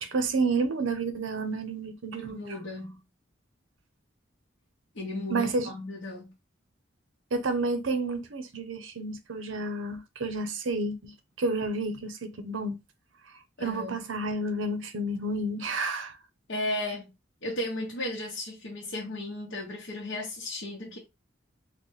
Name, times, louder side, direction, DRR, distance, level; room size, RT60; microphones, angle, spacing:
voice 1, 0.0-2.6 5.3-5.7 7.3-12.8 13.6-16.2, right 3 dB, 80° right, 0.7 m, -30 dB
voice 2, 2.3-3.0 5.0-6.3 13.6-14.0 16.5-17.1 17.4-21.0, left 1 dB, 75° left, 0.9 m, -35 dB
3.9 x 2.1 x 3.1 m
head